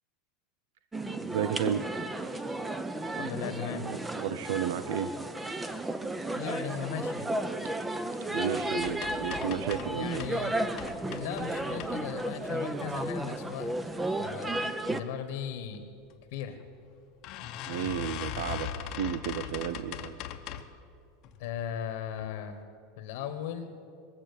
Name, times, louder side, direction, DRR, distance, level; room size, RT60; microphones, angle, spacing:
sound 1, 0.9-15.0, right 1 dB, 10° right, 0.6 m, -33 dB
voice 1, 1.2-1.9 3.9-5.1 8.3-10.3 17.7-20.1, right 9 dB, 75° right, 13 dB, 0.5 m, -33 dB
voice 2, 3.2-3.9 6.3-7.3 9.9-10.6 11.1-13.7 14.2-15.8 16.3-16.6 21.4-22.6 23.0-23.7, left 9 dB, 70° left, 7 dB, 1.2 m, -37 dB
sound 2, 8.8-10.4 10.7-12.3 12.8-13.4 13.9-14.3 14.6-14.7 15.0-15.1 16.1-16.2 16.6-16.7 17.2-20.8 21.2-21.7 22.1-22.3 22.6-22.7, left 10 dB, 40° left, 0.8 m, -40 dB
21.0 x 7.5 x 8.3 m, 2.5 s
supercardioid pair, 155°, 0 cm